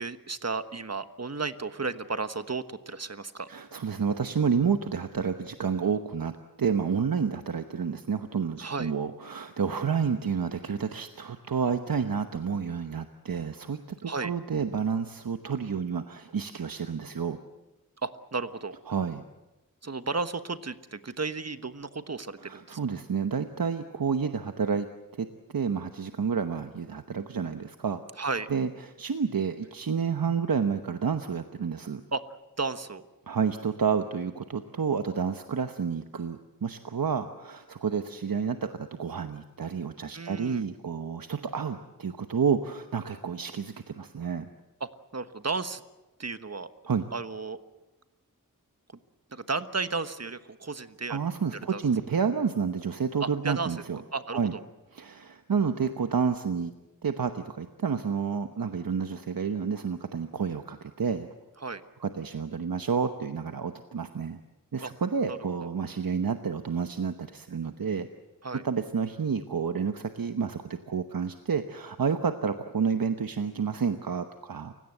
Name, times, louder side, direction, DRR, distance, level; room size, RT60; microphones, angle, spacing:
voice 1, 0.0-3.5 8.6-8.9 14.0-14.3 18.0-18.7 19.8-22.8 28.2-28.5 32.1-32.2 32.6-33.1 40.1-40.6 44.8-45.8 46.2-46.7 47.1-47.6 49.3-51.2 51.7-51.8 53.2-53.8 54.1-54.6 61.6-61.8 64.8-64.9 65.3-65.4 68.4-68.6, right 4 dB, 50° right, 11 dB, 1.3 m, -33 dB
voice 2, 3.5-6.3 6.6-17.4 18.9-19.2 22.4-24.9 25.2-25.3 25.5-28.0 28.5-32.0 33.3-44.5 46.9-47.1 51.1-54.0 54.3-54.5 54.9-56.7 57.0-61.3 62.0-64.4 64.7-68.1 68.6-74.7, right 6 dB, 85° right, 7 dB, 1.0 m, -30 dB
29.5 x 17.0 x 7.9 m, 1.0 s
wide cardioid pair, 60°, 34 cm